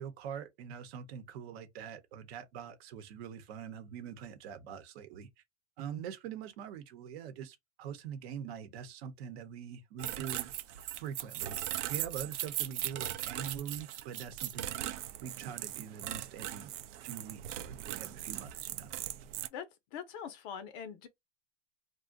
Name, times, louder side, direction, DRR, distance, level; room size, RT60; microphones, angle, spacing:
voice 1, 0.0-5.3 5.8-10.5 10.9-16.7 17.0-18.9, right 8 dB, 60° right, 0.9 m, -44 dB
sound 1, 10.0-19.5, right 12 dB, 80° right, 0.6 m, -39 dB
voice 2, 19.5-21.1, left 8 dB, 45° left, 0.5 m, -43 dB
2.5 x 2.2 x 3.8 m
supercardioid pair, 140°, 35 cm